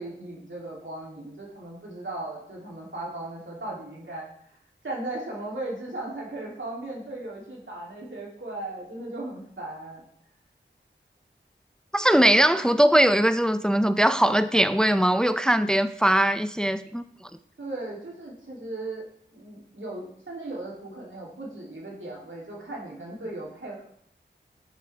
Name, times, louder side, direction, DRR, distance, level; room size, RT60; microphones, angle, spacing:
voice 1, 0.0-4.3 4.8-10.0 17.6-19.0 19.3-23.9, right 2 dB, 80° right, -4 dB, 2.9 m, -37 dB
voice 2, 11.9-17.0, right 1 dB, 5° left, 11 dB, 0.4 m, -20 dB
10.5 x 8.0 x 3.4 m, 0.68 s
wide cardioid pair, 75°, 20 cm